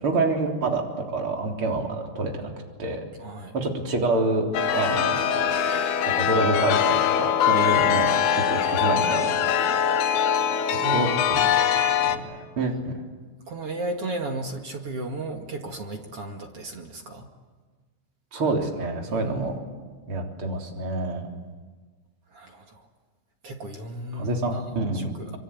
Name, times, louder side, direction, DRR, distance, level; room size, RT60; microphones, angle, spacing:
voice 1, 0.0-2.5 2.8-3.0 3.5-4.5 4.7-5.2 6.2-8.1 8.3-9.3 10.9-11.4 11.9-12.9 18.3-19.6 20.1-21.3 24.1-25.1, right 3 dB, 30° right, 1 dB, 3.8 m, -27 dB
voice 2, 3.2-3.6 10.8-11.8 13.5-17.3 19.1-19.5 22.3-22.9 23.4-25.4, right 2 dB, 45° right, 3 dB, 2.0 m, -34 dB
Chime, 4.5-12.2, left 8 dB, 65° left, 2.9 m, -22 dB
26.5 x 24.0 x 8.6 m, 1.4 s
omnidirectional pair, 5.5 m